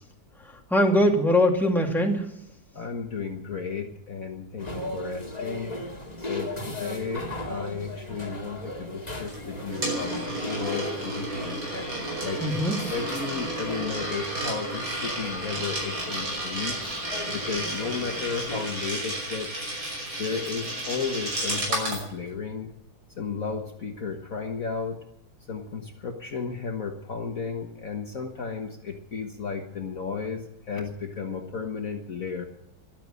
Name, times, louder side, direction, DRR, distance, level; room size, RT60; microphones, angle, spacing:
voice 1, 0.4-2.3 12.4-12.8, left 1 dB, ahead, 0 dB, 2.3 m, -22 dB
voice 2, 2.7-5.7 6.2-11.6 12.2-12.4 12.9-17.0 17.3-19.7 20.2-22.7 23.2-25.0 25.5-32.4, left 5 dB, 50° left, 3 dB, 1.6 m, -34 dB
sound 1, 4.6-18.6, left 1 dB, 20° left, 2.2 m, -38 dB
Coin (dropping), 9.3-22.1, right 1 dB, 80° right, 6.5 m, -32 dB
13.5 x 12.5 x 7.7 m, 0.77 s
omnidirectional pair, 2.0 m